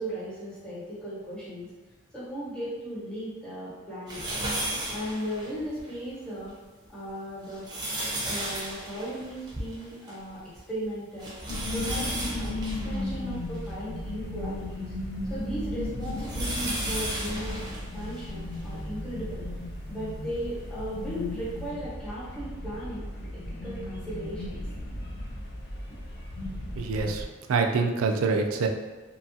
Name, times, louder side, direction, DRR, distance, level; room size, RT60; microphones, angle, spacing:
voice 1, 0.0-1.7 2.1-4.2 4.9-6.5 6.9-7.6 8.2-10.4 10.7-14.9 15.3-19.5 19.9-24.6, equal, 5° left, -10 dB, 1.0 m, -37 dB
sound 1, 4.1-5.9 6.4-6.5 7.3-10.3 10.6-10.7 11.2-14.2 14.8-18.7 19.4-19.5 20.8-20.9, right 1 dB, 20° right, 0.6 m, -35 dB
sound 2, 11.5-27.2, left 1 dB, 55° left, 0.5 m, -35 dB
voice 2, 26.8-28.7, right 4 dB, 85° right, 4 dB, 0.3 m, -26 dB
2.8 x 2.3 x 2.7 m, 1.2 s
head